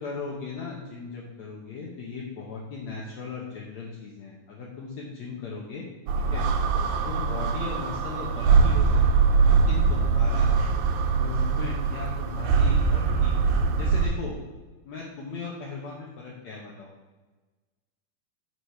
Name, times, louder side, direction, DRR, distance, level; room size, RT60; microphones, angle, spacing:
voice 1, 0.0-5.8 6.2-6.4 7.1-10.7 11.1-13.4 13.8-14.4 14.8-16.9, left 4 dB, 65° left, -3 dB, 2.3 m, -37 dB
sound 1, 6.1-14.1, right 5 dB, 75° right, 2.2 m, -22 dB
9.6 x 5.0 x 5.8 m, 1.2 s
omnidirectional pair, 3.7 m